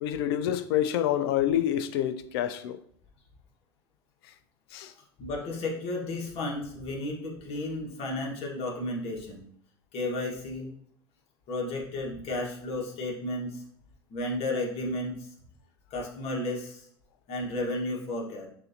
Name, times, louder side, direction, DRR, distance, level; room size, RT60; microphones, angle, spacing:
voice 1, 0.0-2.8 4.7-4.9, left 11 dB, 70° left, 0.4 m, -27 dB
voice 2, 5.2-9.4 9.9-10.7 11.5-13.6 14.1-15.3 15.9-16.9 17.3-18.5, left 2 dB, 50° left, 1.5 m, -33 dB
6.2 x 2.6 x 2.8 m
hypercardioid pair, 85°, 13 cm